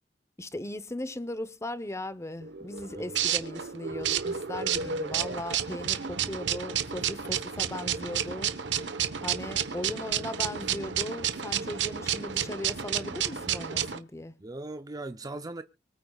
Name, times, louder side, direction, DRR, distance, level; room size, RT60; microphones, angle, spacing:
voice 1, 0.4-8.8 9.2-14.3, left 1 dB, 15° left, 0.7 m, -38 dB
sound 1, 2.4-14.0, right 8 dB, 80° right, 1.0 m, -31 dB
voice 2, 2.9-3.3 6.1-6.4 9.8-9.9 14.4-15.6, right 2 dB, 20° right, 0.5 m, -40 dB
24.5 x 9.1 x 2.3 m
head